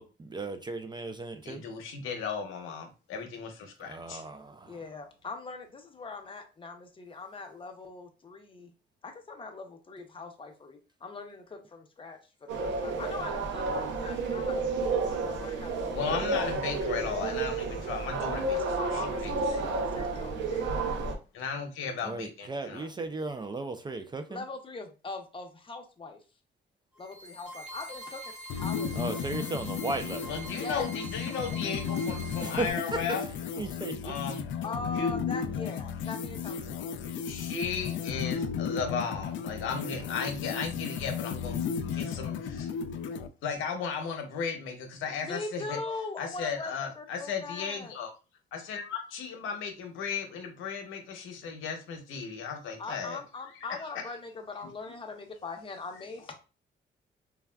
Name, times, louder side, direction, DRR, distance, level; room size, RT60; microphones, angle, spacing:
voice 1, 0.0-1.6 3.8-4.8 22.0-24.5 29.0-30.3 32.4-34.2, right 2 dB, 20° right, 0.4 m, -36 dB
voice 2, 1.4-4.2 15.9-19.3 21.3-22.9 30.3-33.3 34.0-34.4 35.0-35.1 37.2-41.6 41.9-42.7 43.4-45.8 46.2-48.1 48.5-53.2, left 6 dB, 85° left, 0.8 m, -35 dB
voice 3, 4.7-8.7 9.0-14.9 15.3-16.8 18.5-20.9 24.3-26.2 27.0-28.3 28.6-29.0 30.5-30.9 34.6-36.8 45.2-47.9 52.8-56.3, left 3 dB, 25° left, 0.7 m, -41 dB
sound 1, 12.5-21.2, right 3 dB, 70° right, 0.7 m, -31 dB
sound 2, 27.0-32.7, right 1 dB, 5° right, 1.2 m, -45 dB
sound 3, 28.5-43.3, left 6 dB, 70° left, 0.4 m, -34 dB
3.4 x 2.2 x 2.2 m
cardioid pair, 90°, 20 cm